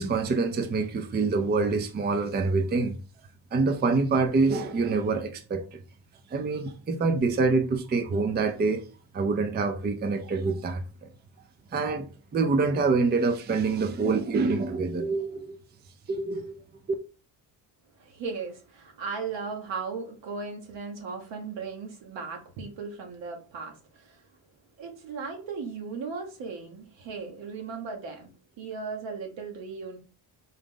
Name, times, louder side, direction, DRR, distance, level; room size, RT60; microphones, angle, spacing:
voice 1, 0.0-3.0 3.5-5.8 6.3-8.9 9.1-11.1 11.7-12.0 12.3-15.6 16.1-16.6, right 4 dB, 25° right, 0.5 m, -26 dB
voice 2, 18.0-24.2 24.8-28.3 28.6-30.0, right 5 dB, 70° right, 1.3 m, -37 dB
3.9 x 2.4 x 3.7 m
supercardioid pair, 70°, 45 cm